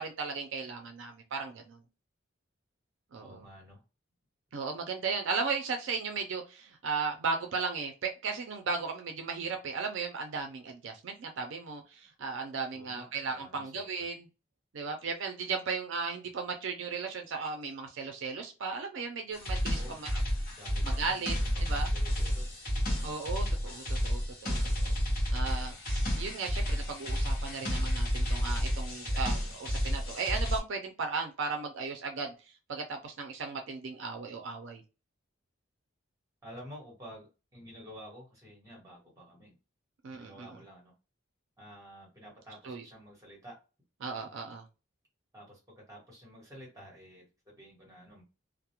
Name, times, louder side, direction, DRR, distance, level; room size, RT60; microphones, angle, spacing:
voice 1, 0.0-1.8 3.1-3.4 4.5-14.3 14.7-20.1 20.8-21.3 21.6-21.9 23.0-25.0 25.3-32.3 32.7-34.8 40.0-40.5 42.6-42.8 44.0-44.6, right 4 dB, 70° right, 4 dB, 0.4 m, -36 dB
voice 2, 3.2-3.8 12.7-14.1 19.6-20.0 20.5-22.7 23.2-23.5 36.4-39.6 40.0-40.9 41.6-43.6 45.3-48.2, equal, 15° right, -2 dB, 1.1 m, -51 dB
sound 1, 19.3-30.6, equal, 45° left, 0.9 m, -31 dB
2.3 x 2.0 x 2.8 m, 0.30 s
head